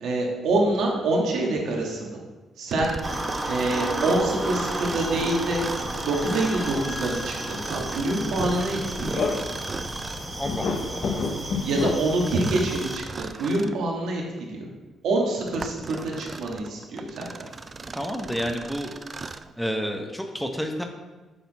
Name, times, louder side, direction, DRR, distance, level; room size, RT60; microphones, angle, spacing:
voice 1, 0.0-2.2 2.6-2.9 3.4-5.6 6.0-9.3 11.6-14.7 15.0-17.5, right 2 dB, 80° right, -1 dB, 1.5 m, -26 dB
Mechanisms, 2.7-10.4 12.2-13.8 14.4-14.5 15.2-19.5, right 4 dB, 35° right, 0.3 m, -37 dB
sound 1, 3.0-13.0, right 1 dB, 15° right, 1.1 m, -33 dB
sound 2, 3.9-5.4 5.7-9.9 10.3-11.9, left 4 dB, 60° left, 0.7 m, -32 dB
voice 2, 10.4-11.2 17.9-18.9 19.6-20.8, equal, ahead, 4 dB, 0.7 m, -30 dB
7.0 x 4.2 x 4.1 m, 1.2 s
cardioid pair, 90°, 0 cm